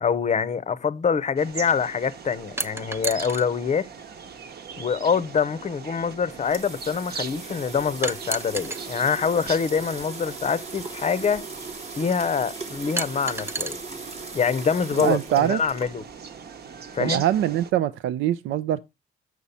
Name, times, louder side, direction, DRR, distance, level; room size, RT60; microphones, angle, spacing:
voice 1, 0.0-3.9 4.7-11.5 11.9-13.8 14.3-16.0 16.9-17.2, left 6 dB, 35° left, 0.6 m, -25 dB
sound 1, 1.4-17.7, right 6 dB, 55° right, 1.0 m, -40 dB
sound 2, 2.6-3.5 4.7-4.8 8.0-8.8 10.3-10.4 13.0-13.7, right 2 dB, 10° right, 0.5 m, -30 dB
sound 3, 6.0-16.3, right 3 dB, 30° right, 1.0 m, -39 dB
voice 2, 15.0-15.6 17.0-18.8, right 12 dB, 75° right, 0.5 m, -23 dB
6.8 x 6.2 x 4.1 m
cardioid pair, 90°, 20 cm